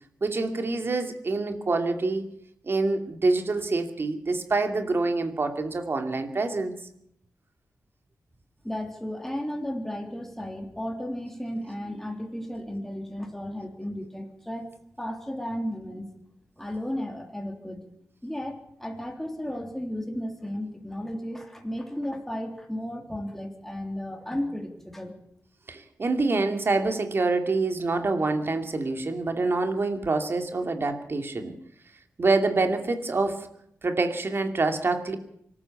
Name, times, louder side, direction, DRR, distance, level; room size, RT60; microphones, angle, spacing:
voice 1, 0.2-2.3 2.6-6.7 25.7-31.5 32.2-33.5 33.8-35.2, right 3 dB, 45° right, 6 dB, 2.6 m, -26 dB
voice 2, 8.6-14.7 15.0-16.1 16.6-17.8 18.2-25.1, left 1 dB, 5° left, 3 dB, 3.5 m, -34 dB
24.5 x 13.5 x 8.6 m, 0.73 s
wide cardioid pair, 110°, 6 cm